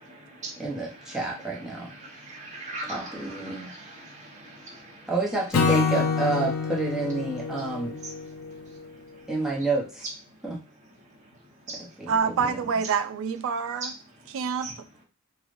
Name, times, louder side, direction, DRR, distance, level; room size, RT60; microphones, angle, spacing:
voice 1, 0.0-5.2 5.7-6.2 6.5-6.7 7.2-9.7 10.3-12.1 13.5-14.9, right 2 dB, 35° right, 1.0 m, -43 dB
voice 2, 0.6-1.9 2.9-3.7 5.1-8.0 9.3-10.0 10.4-10.6 12.0-12.6, right 3 dB, 5° right, 0.8 m, -29 dB
Acoustic guitar / Strum, 5.5-8.9, left 5 dB, 75° left, 0.5 m, -27 dB
voice 3, 12.1-13.9 14.3-14.7, right 6 dB, 65° right, 0.3 m, -26 dB
3.1 x 2.3 x 2.5 m
head